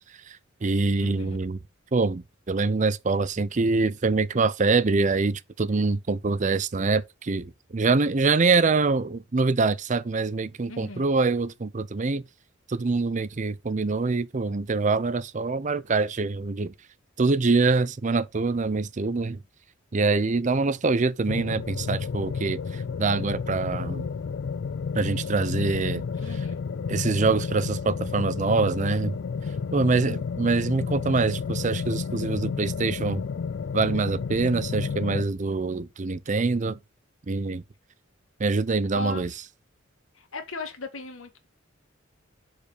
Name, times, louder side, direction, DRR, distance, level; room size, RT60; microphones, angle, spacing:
voice 1, 0.3-1.6 1.9-12.2 12.7-16.7 17.2-19.4 19.9-24.1 24.9-26.0 26.9-29.2 29.7-33.2 33.7-36.8 37.3-37.6 38.4-39.3, right 3 dB, 35° right, 0.5 m, -25 dB
voice 2, 1.0-1.4 10.7-11.1 26.2-26.6 38.9-39.3 40.1-41.5, left 2 dB, 85° left, 1.7 m, -37 dB
sound 1, 21.3-35.2, left 5 dB, 60° left, 0.4 m, -31 dB
6.7 x 4.9 x 4.9 m
head